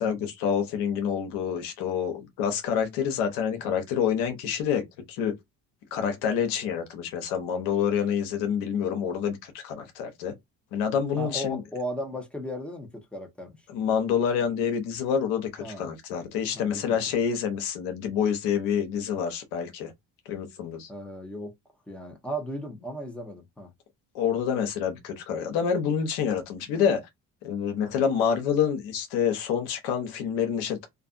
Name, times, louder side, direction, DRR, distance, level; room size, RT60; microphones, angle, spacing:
voice 1, 0.0-4.8 5.1-5.3 5.9-10.3 10.7-11.6 13.7-19.9 20.3-20.9 24.1-27.0 27.4-30.8, left 7 dB, 90° left, 0.9 m, -27 dB
voice 2, 11.2-13.6 15.6-15.9 16.5-17.1 20.9-21.5 21.9-23.7, equal, 5° left, 0.9 m, -36 dB
2.5 x 2.5 x 2.5 m
supercardioid pair, 75°, 37 cm